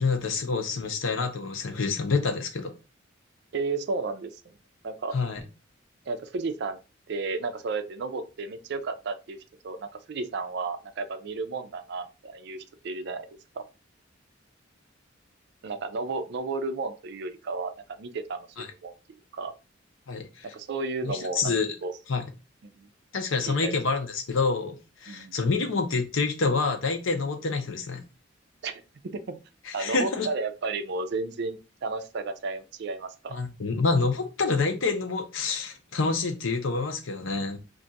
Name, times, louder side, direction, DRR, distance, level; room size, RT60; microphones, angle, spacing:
voice 1, 0.0-2.7 5.1-5.4 18.6-18.7 20.1-20.5 21.0-21.7 22.1-22.2 23.1-28.0 29.7-30.3 33.3-37.6, left 4 dB, 85° left, 0.7 m, -27 dB
voice 2, 3.5-4.4 4.8-5.1 6.1-6.8 7.1-9.4 9.6-13.3 13.5-13.7 15.6-17.7 18.0-18.9 19.3-19.5 20.5-21.5 21.8-21.9 22.6-22.9 23.5-23.8 25.1-25.3 28.6-29.4 29.7-33.4, right 3 dB, 60° right, 0.4 m, -33 dB
2.5 x 2.3 x 3.9 m
head